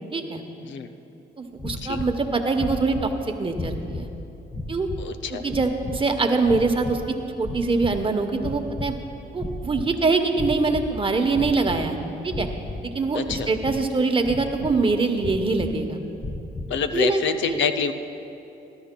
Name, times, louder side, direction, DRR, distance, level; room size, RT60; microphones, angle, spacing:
voice 1, 0.1-0.4 1.4-4.1 4.7-4.9 5.3-7.0 7.4-8.9 9.3-12.0 12.2-12.5 12.8-16.0 16.9-17.6, right 3 dB, 25° right, 5 dB, 0.9 m, -24 dB
sound 1, 1.6-2.2 2.5-3.2 3.5-4.1 4.5-5.1 5.5-6.0 6.4-7.1 7.4-8.1 8.4-9.0 9.3-9.9 10.3-11.0 11.3-11.9 12.3-12.8 13.3-13.9 14.2-14.8 15.2-15.7 16.2-16.8, left 2 dB, 15° left, 0.9 m, -33 dB
voice 2, 5.0-5.5 13.1-13.5 16.7-17.9, left 7 dB, 70° left, 8 dB, 0.6 m, -26 dB
20.0 x 12.5 x 2.3 m, 2.9 s
cardioid pair, 90°, 20 cm